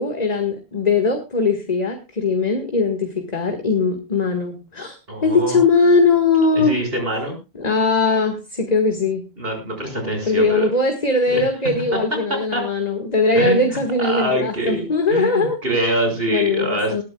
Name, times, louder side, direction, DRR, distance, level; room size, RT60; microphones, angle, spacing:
voice 1, 0.0-5.0 5.2-6.8 7.6-9.2 10.3-15.6 16.3-17.0, left 3 dB, 40° left, 5 dB, 2.0 m, -20 dB
voice 2, 5.1-5.6 6.5-7.4 9.4-10.7 11.3-11.5 12.5-12.6 13.3-17.0, right 1 dB, 60° right, 4 dB, 6.0 m, -24 dB
21.0 x 12.5 x 2.3 m, 0.27 s
omnidirectional pair, 1.1 m